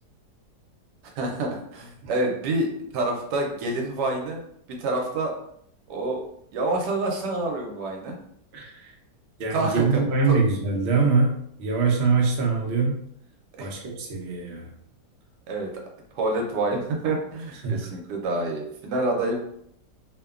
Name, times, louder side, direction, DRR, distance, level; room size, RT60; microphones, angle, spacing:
voice 1, 1.2-2.7 2.9-4.4 4.7-5.3 5.9-6.2 6.5-8.2 9.5-10.0 10.3-10.4 13.6-13.7 15.5-15.7 16.1-19.4, right 2 dB, 80° right, 1 dB, 1.2 m, -27 dB
voice 2, 8.5-8.9 9.4-11.3 11.6-12.9 13.6-14.7 17.6-17.9, right 4 dB, 60° right, -1 dB, 0.7 m, -23 dB
2.9 x 2.2 x 2.3 m, 0.70 s
omnidirectional pair, 1.8 m